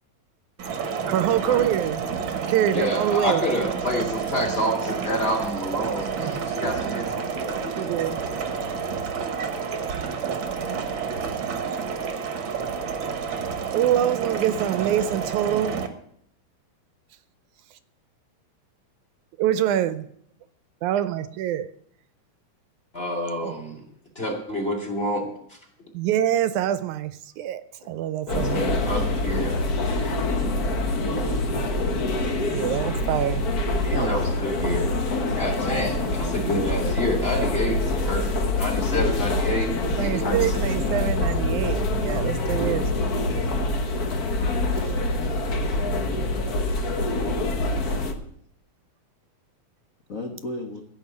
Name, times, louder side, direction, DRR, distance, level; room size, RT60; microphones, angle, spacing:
sound 1, 0.6-15.9, right 6 dB, 55° right, 1.6 m, -29 dB
voice 1, 1.1-2.0 2.5-3.4 7.8-8.2 13.7-15.8 19.4-20.1 20.8-21.7 23.4-23.5 25.9-28.6 32.5-33.5 40.0-42.9 44.8-45.0, right 11 dB, 80° right, 13 dB, 2.0 m, -25 dB
voice 2, 2.7-7.8 8.2-8.3 22.9-23.8 24.1-25.6 28.3-29.6 33.8-40.6, equal, 20° left, 2 dB, 2.6 m, -28 dB
sound 2, 28.3-48.1, left 2 dB, 55° left, 1.0 m, -25 dB
voice 3, 28.6-31.7 43.6-43.7 50.1-50.8, left 2 dB, 75° left, 1 dB, 0.7 m, -37 dB
15.5 x 5.3 x 9.4 m, 0.67 s
omnidirectional pair, 3.6 m